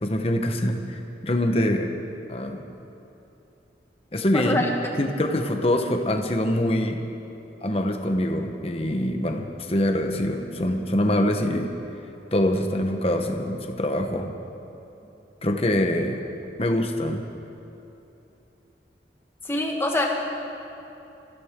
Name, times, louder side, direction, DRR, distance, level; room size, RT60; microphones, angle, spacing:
voice 1, 0.0-1.9 2.3-2.6 4.1-4.6 5.0-7.0 7.6-11.7 12.3-14.3 15.4-16.2 16.6-17.2, left 1 dB, 35° left, 4 dB, 1.1 m, -24 dB
voice 2, 4.3-4.7 19.4-20.1, left 1 dB, 15° left, 0 dB, 1.5 m, -24 dB
24.5 x 14.5 x 3.7 m, 2.9 s
head